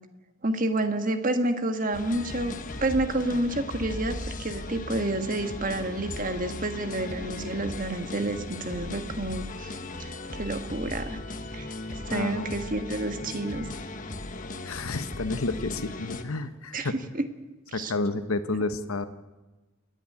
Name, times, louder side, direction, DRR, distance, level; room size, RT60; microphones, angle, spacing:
voice 1, 0.4-2.6 2.8-11.2 11.5-13.7 16.7-17.3 17.7-17.9, right 2 dB, 40° right, 8 dB, 1.5 m, -29 dB
sound 1, 1.9-16.2, left 2 dB, 35° left, 1.3 m, -37 dB
voice 2, 12.1-12.5 14.6-16.9 17.7-19.0, left 3 dB, 75° left, 10 dB, 1.1 m, -30 dB
29.0 x 10.5 x 9.7 m, 1.2 s
head